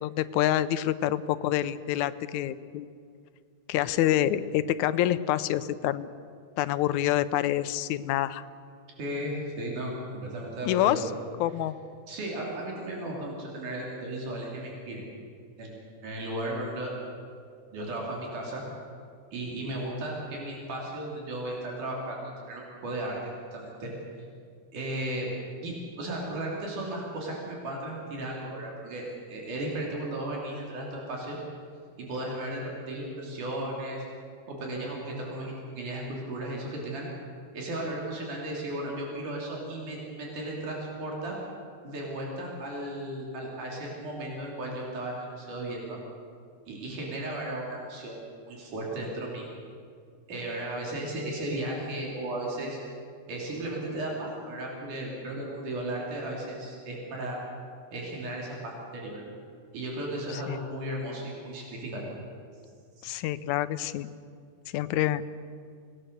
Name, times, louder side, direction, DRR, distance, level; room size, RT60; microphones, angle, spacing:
voice 1, 0.0-2.9 3.7-6.1 6.6-8.4 10.7-11.1 11.4-11.8 60.5-60.6 63.0-64.1 64.7-65.2, left 13 dB, 80° left, 13 dB, 2.0 m, -27 dB
voice 2, 9.0-11.0 12.1-15.0 15.6-15.8 16.0-17.0 17.7-18.6 19.3-22.2 22.5-23.2 23.5-23.9 24.7-25.3 25.6-31.4 32.0-34.0 34.5-37.1 37.5-41.4 41.8-46.0 46.7-49.5 50.3-52.8 53.3-57.4 57.9-59.2 59.7-62.0, right 1 dB, 90° right, -2 dB, 4.8 m, -35 dB
25.0 x 18.5 x 6.8 m, 2.3 s
omnidirectional pair, 3.5 m